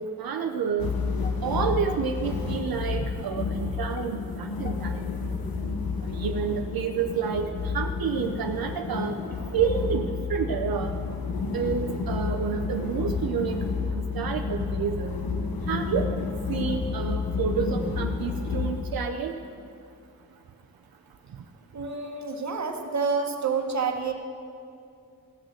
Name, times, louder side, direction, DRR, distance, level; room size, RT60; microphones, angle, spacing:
voice 1, 0.2-0.9 1.4-5.0 6.1-9.2 9.5-10.9 11.5-13.6 14.0-15.1 15.7-16.1 16.5-19.3, right 6 dB, 90° right, 4 dB, 0.7 m, -29 dB
sound 1, 0.8-18.9, left 5 dB, 90° left, 1.1 m, -30 dB
sound 2, 1.2-2.5 3.0-5.2 5.7-5.9 6.4-6.6, left 5 dB, 25° left, 0.6 m, -42 dB
voice 2, 21.7-24.1, right 5 dB, 55° right, 4 dB, 1.3 m, -28 dB
16.5 x 6.3 x 6.4 m, 2.5 s
wide cardioid pair, 85°, 35 cm